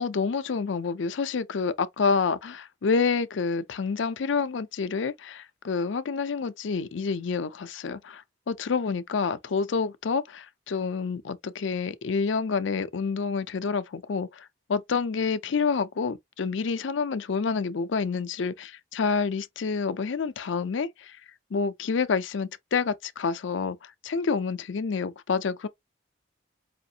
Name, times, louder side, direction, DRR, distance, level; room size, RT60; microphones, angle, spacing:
voice 1, 0.0-21.2 21.5-25.7, left 5 dB, 80° left, 0.5 m, -28 dB
5.0 x 2.5 x 2.7 m
head